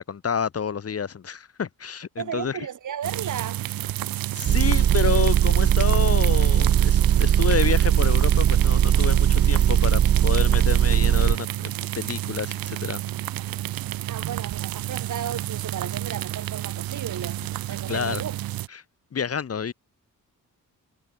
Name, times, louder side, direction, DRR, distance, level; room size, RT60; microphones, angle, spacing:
voice 1, 0.0-2.7 4.0-4.1 4.3-13.0 17.9-18.2 18.7-18.8 19.1-19.7, left 7 dB, 45° left, 1.5 m, -29 dB
voice 2, 2.2-3.7 14.1-17.4 17.7-18.4, right 9 dB, 60° right, 1.7 m, -34 dB
sound 1, 3.0-18.7, right 14 dB, 85° right, 0.7 m, -31 dB
Motor vehicle (road) / Engine, 4.5-11.4, right 10 dB, 45° right, 0.5 m, -19 dB
cardioid pair, 115°, 34 cm